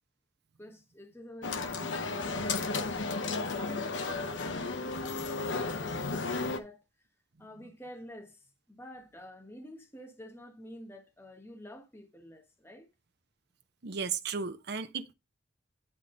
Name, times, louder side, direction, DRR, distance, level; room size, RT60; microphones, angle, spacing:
voice 1, 0.6-6.8 7.4-12.9, equal, 10° left, 1.3 m, -49 dB
sound 1, 1.4-6.6, left 3 dB, 70° left, 0.9 m, -33 dB
voice 2, 13.8-15.1, right 5 dB, 60° right, 0.8 m, -35 dB
9.9 x 3.7 x 3.9 m
head